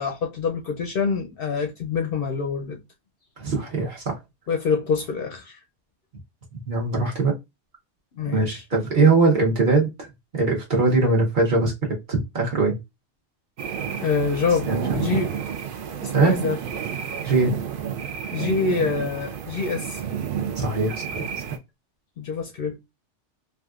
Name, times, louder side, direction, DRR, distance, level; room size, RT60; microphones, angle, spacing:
voice 1, 0.0-2.8 4.5-5.6 8.2-8.6 14.0-15.3 16.0-16.6 18.3-20.0 22.2-22.8, left 5 dB, 60° left, 0.6 m, -26 dB
voice 2, 3.4-4.2 6.7-7.3 8.3-9.9 10.3-11.7 12.1-12.8 14.7-15.0 16.1-16.4 17.2-17.6 20.6-21.0, right 3 dB, 45° right, 1.0 m, -21 dB
sound 1, 13.6-21.6, right 8 dB, 60° right, 0.6 m, -30 dB
3.4 x 2.5 x 2.3 m
omnidirectional pair, 1.2 m